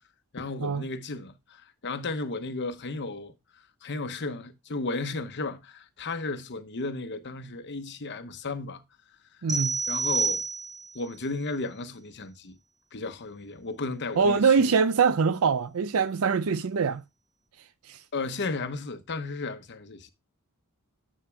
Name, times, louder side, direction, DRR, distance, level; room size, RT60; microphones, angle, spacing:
voice 1, 0.3-3.3 3.8-8.8 9.9-10.4 10.9-12.6 12.9-14.7 18.1-20.1, left 3 dB, 55° left, 0.9 m, -34 dB
voice 2, 9.4-9.8 14.2-17.0 17.9-18.0, right 5 dB, 70° right, 0.5 m, -23 dB
sound 1, 9.5-11.0, right 4 dB, 20° right, 3.2 m, -28 dB
10.0 x 7.3 x 2.2 m
head